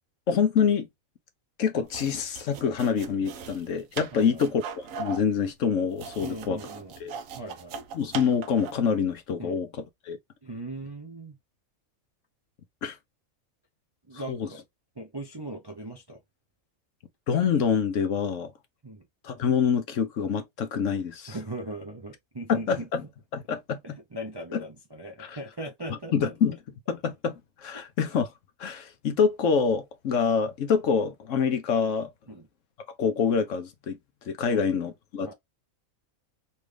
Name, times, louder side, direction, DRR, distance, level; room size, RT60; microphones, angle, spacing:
voice 1, 0.3-0.9 1.6-6.6 7.0-7.1 7.9-10.2 12.8-13.0 14.3-14.5 17.3-18.5 19.2-21.3 22.5-23.0 23.3-23.8 24.5-24.6 25.2-25.4 25.9-26.6 26.9-28.3 28.6-32.1 33.0-34.0 34.3-35.3, left 6 dB, 65° left, 1.1 m, -26 dB
sound 1, 1.8-8.9, right 6 dB, 70° right, 1.0 m, -40 dB
voice 2, 6.2-7.8 9.4-9.6 10.4-11.4 14.1-14.6 15.0-16.2 18.8-19.0 21.3-22.9 23.8-26.1 32.3-32.5 34.5-34.7 35.2-35.3, right 1 dB, 30° right, 0.4 m, -39 dB
4.1 x 2.4 x 3.3 m
omnidirectional pair, 1.5 m